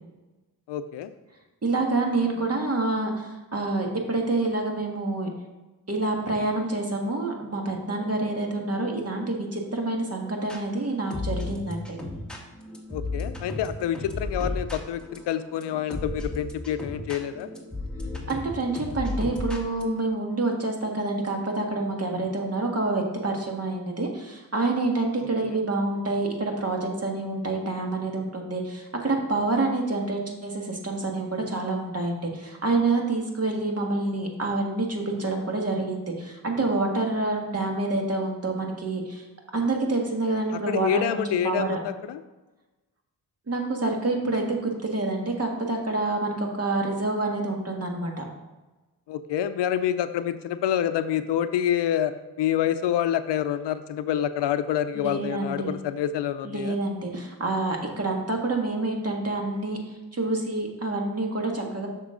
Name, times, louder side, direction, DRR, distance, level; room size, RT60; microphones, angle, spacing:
voice 1, 0.7-1.1 12.9-17.5 25.4-25.6 40.7-42.2 49.1-52.1 52.4-56.8, left 10 dB, 75° left, 12 dB, 0.6 m, -27 dB
voice 2, 1.6-5.3 5.9-12.0 18.3-39.2 39.5-41.8 43.5-48.2 54.9-55.8 56.4-59.8 60.1-61.9, right 2 dB, 35° right, 1 dB, 1.8 m, -27 dB
sound 1, 7.9-10.6 11.1-19.9, left 2 dB, ahead, 1.5 m, -35 dB
7.0 x 6.3 x 3.8 m, 1.1 s
cardioid pair, 60°, 42 cm